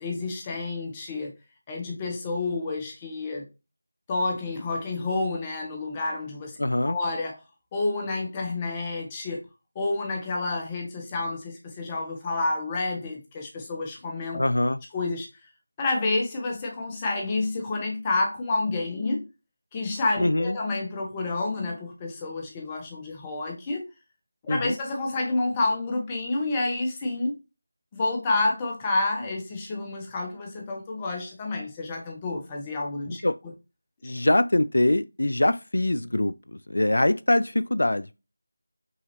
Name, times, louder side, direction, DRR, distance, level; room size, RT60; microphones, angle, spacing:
voice 1, 0.0-1.3 1.7-3.5 4.1-6.6 6.8-7.4 7.7-9.4 9.7-14.4 14.9-15.3 15.8-19.3 19.7-23.9 24.4-27.4 27.9-33.2 34.0-34.1, left 2 dB, 15° left, 1.0 m, -29 dB
voice 2, 6.6-7.0 14.4-14.8 20.2-20.6 24.5-24.8 33.2-33.4 34.0-38.2, left 1 dB, 65° left, 0.4 m, -23 dB
5.6 x 2.8 x 2.7 m
figure-of-eight pair, 170°, 0 cm